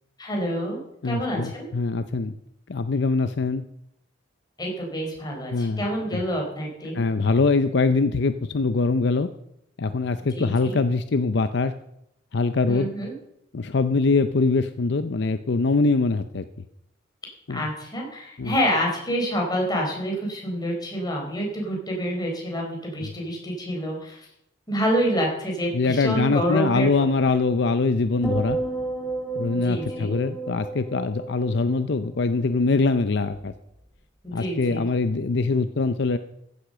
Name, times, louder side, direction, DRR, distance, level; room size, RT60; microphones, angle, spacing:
voice 1, 0.2-0.8 1.0-1.6 4.6-7.0 10.3-10.8 12.6-13.1 17.5-24.3 24.7-27.1 29.6-30.1 34.2-34.9, equal, 20° left, 0 dB, 4.2 m, -27 dB
voice 2, 1.0-2.3 2.7-3.6 5.5-5.8 6.9-9.3 9.8-11.7 12.3-12.9 13.5-16.4 17.5-17.6 18.4-18.5 25.7-28.6 29.4-33.5 34.3-36.2, left 3 dB, 65° left, 11 dB, 0.6 m, -23 dB
sound 1, 28.2-32.6 32.9-33.3, right 3 dB, ahead, 2.2 m, -33 dB
15.0 x 8.2 x 6.7 m, 0.76 s
head